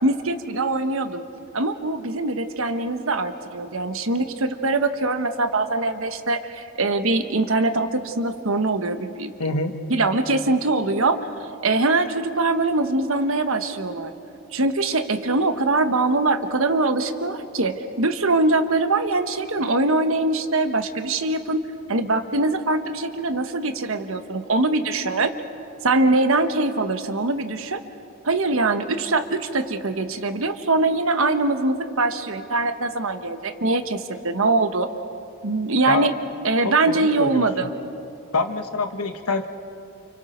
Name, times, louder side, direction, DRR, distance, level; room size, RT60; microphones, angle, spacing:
voice 1, 0.0-1.2 1.5-9.3 9.9-14.1 14.5-21.6 21.9-25.3 25.8-27.8 28.2-34.9 35.4-36.1 36.4-37.7, right 2 dB, 65° right, 8 dB, 1.3 m, -22 dB
voice 2, 9.4-9.8 35.9-36.1 36.6-37.5 38.3-39.5, left 3 dB, 85° left, 7 dB, 1.4 m, -25 dB
29.5 x 29.0 x 4.5 m, 2.7 s
head